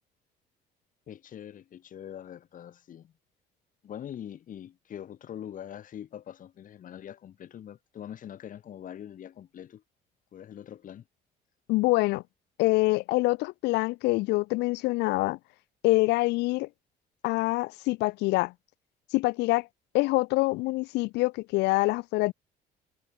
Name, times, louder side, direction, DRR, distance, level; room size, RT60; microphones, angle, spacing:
voice 1, 1.1-3.1 3.8-9.8 10.3-11.0, left 10 dB, 50° left, 2.7 m, -43 dB
voice 2, 11.7-12.2 12.6-15.4 15.8-16.7 17.2-18.5 19.1-19.7 19.9-22.3, left 22 dB, 90° left, 0.7 m, -25 dB
cardioid pair, 110°, 17 cm